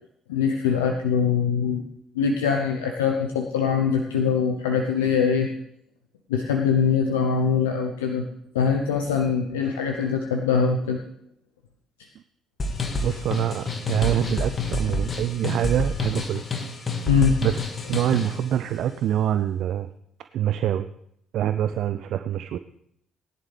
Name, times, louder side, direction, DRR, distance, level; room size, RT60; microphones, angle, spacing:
voice 1, 0.3-1.8 2.1-5.5 6.3-8.2 8.5-11.0 17.1-17.3, left 6 dB, 80° left, 4 dB, 0.8 m, -23 dB
sound 1, 12.6-18.4, left 3 dB, 40° left, 2.0 m, -28 dB
voice 2, 13.0-16.4 17.4-17.6 17.9-19.9 20.3-20.9 21.3-22.6, right 10 dB, 60° right, 11 dB, 0.4 m, -25 dB
19.5 x 10.5 x 3.4 m, 0.73 s
figure-of-eight pair, 45°, 0 cm